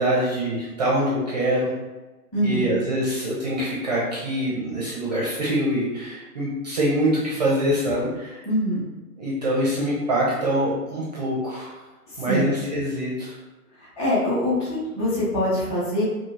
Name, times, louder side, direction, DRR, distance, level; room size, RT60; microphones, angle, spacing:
voice 1, 0.0-1.7 2.4-8.4 9.2-11.7 12.2-13.3, right 1 dB, 30° right, -5 dB, 0.5 m, -24 dB
voice 2, 2.3-2.8 8.4-8.9 12.1-12.5 13.8-16.0, left 1 dB, 15° left, -9 dB, 1.0 m, -24 dB
2.7 x 2.7 x 2.6 m, 1.1 s
figure-of-eight pair, 120°, 48 cm